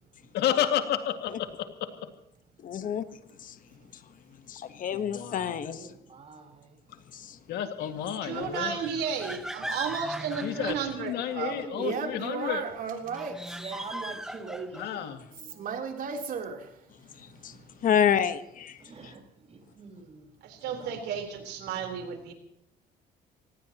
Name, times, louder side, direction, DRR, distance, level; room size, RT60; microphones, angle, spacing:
voice 1, 0.3-1.9 4.9-5.6 7.5-8.8 10.4-12.7 14.8-15.2, left 10 dB, 80° left, 7 dB, 2.2 m, -31 dB
voice 2, 2.6-3.0 3.4-3.5 4.5-5.8 7.1-7.4 17.2-17.6 17.8-18.8, left 8 dB, 55° left, 11 dB, 1.3 m, -28 dB
voice 3, 5.5-6.8 11.3-12.3 13.5-15.7 18.8-20.3 20.5-21.1, right 4 dB, 40° right, 4 dB, 5.3 m, -44 dB
voice 4, 8.2-11.6 17.5-17.6 20.4-22.3, right 6 dB, 80° right, 5 dB, 4.1 m, -33 dB
sound 1, 8.3-11.4 13.0-15.0, right 1 dB, 5° right, 1.0 m, -39 dB
voice 5, 11.8-13.6 15.5-16.7, right 6 dB, 55° right, 3 dB, 3.5 m, -34 dB
24.5 x 19.5 x 3.0 m, 0.78 s
cardioid pair, 110°, 17 cm